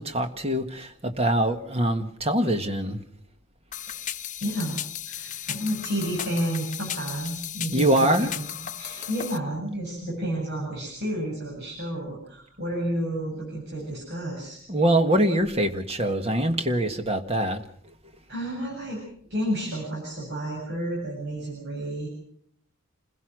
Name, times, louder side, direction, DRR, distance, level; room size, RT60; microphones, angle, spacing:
voice 1, 0.0-3.0 7.7-8.3 8.9-9.1 14.7-17.9, right 1 dB, 30° right, 6 dB, 1.6 m, -24 dB
sound 1, 3.7-9.4, left 10 dB, 35° left, 0.9 m, -35 dB
voice 2, 4.4-4.8 5.1-7.9 8.8-14.6 18.3-19.0 19.3-22.1, right 1 dB, 50° right, -3 dB, 7.9 m, -31 dB
28.5 x 16.5 x 6.3 m, 0.63 s
head